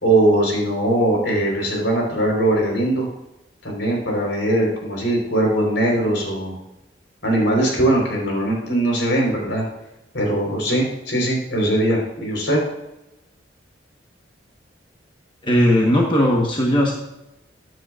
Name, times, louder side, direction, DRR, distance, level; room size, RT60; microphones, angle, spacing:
voice 1, 0.0-3.1 3.6-6.5 7.2-9.6 10.1-12.6, right 1 dB, 75° left, 0 dB, 4.0 m, -20 dB
voice 2, 15.4-16.9, equal, 25° left, -1 dB, 1.2 m, -17 dB
14.5 x 9.2 x 2.5 m, 0.93 s
head